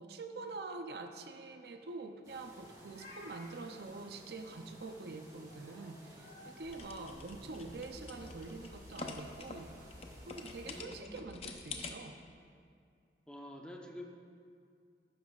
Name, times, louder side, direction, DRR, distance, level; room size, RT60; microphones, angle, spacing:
voice 1, 0.0-10.0 10.3-12.2, right 3 dB, 60° right, 6 dB, 0.5 m, -46 dB
sound 1, 2.2-10.8, equal, 20° right, 2.1 m, -57 dB
Meow, 2.5-3.6 5.5-6.5, left 2 dB, 85° left, 2.5 m, -55 dB
sound 2, 6.6-11.9, left 3 dB, 35° left, 0.7 m, -47 dB
voice 2, 7.0-7.7 10.6-11.3 13.3-14.0, left 1 dB, 5° left, 0 dB, 0.9 m, -50 dB
14.5 x 11.5 x 2.4 m, 2.3 s
head